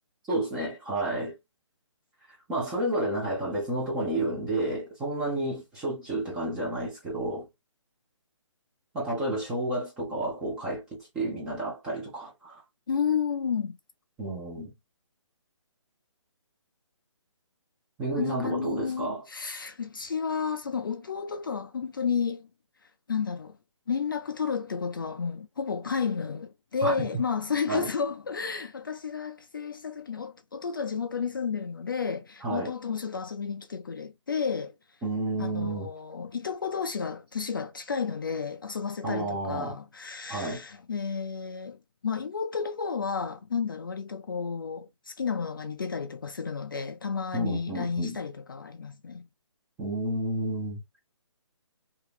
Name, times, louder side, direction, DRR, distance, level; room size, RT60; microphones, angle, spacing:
voice 1, 0.3-1.3 2.5-7.5 8.9-12.6 14.2-14.7 18.0-19.2 26.8-26.9 27.7-27.9 32.4-32.7 35.0-35.9 39.0-39.8 40.3-40.6 47.3-48.2 49.8-50.8, right 1 dB, 5° right, 0.6 m, -31 dB
voice 2, 12.9-13.8 18.2-22.5 23.1-23.6 23.9-34.7 35.4-49.3, left 6 dB, 40° left, 0.4 m, -32 dB
2.9 x 2.7 x 3.3 m
hypercardioid pair, 170°, 16 cm